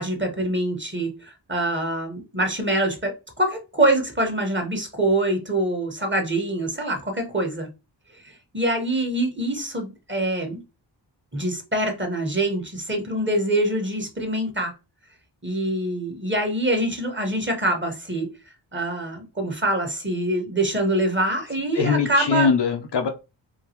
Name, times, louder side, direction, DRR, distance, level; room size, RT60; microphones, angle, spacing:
voice 1, 0.0-7.7 8.2-10.6 11.3-14.7 15.4-18.3 18.7-22.5, right 1 dB, 25° right, 1.3 m, -25 dB
voice 2, 21.7-23.1, left 6 dB, 60° left, 0.8 m, -21 dB
3.8 x 2.3 x 2.9 m
cardioid pair, 50°, 48 cm